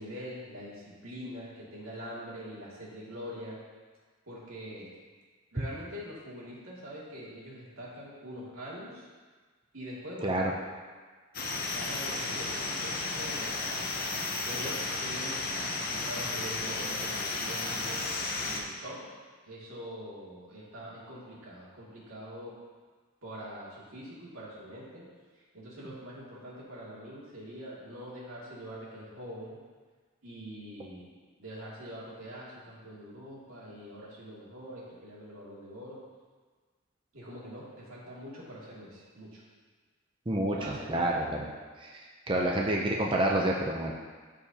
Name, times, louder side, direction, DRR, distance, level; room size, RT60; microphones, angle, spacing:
voice 1, 0.0-3.6 4.3-4.9 5.5-9.1 9.7-10.5 11.7-13.9 14.5-18.1 18.4-19.0 19.4-22.5 23.2-25.0 25.3-29.6 30.2-31.1 31.4-36.0 37.1-39.4 40.4-41.4, equal, 90° right, -7 dB, 2.5 m, -44 dB
sound 1, 11.3-18.6, left 3 dB, 45° left, 0.9 m, -33 dB
voice 2, 40.3-41.4 41.8-42.0 42.3-43.9, right 1 dB, 25° right, -1 dB, 0.6 m, -28 dB
13.0 x 5.0 x 2.9 m, 1.5 s
head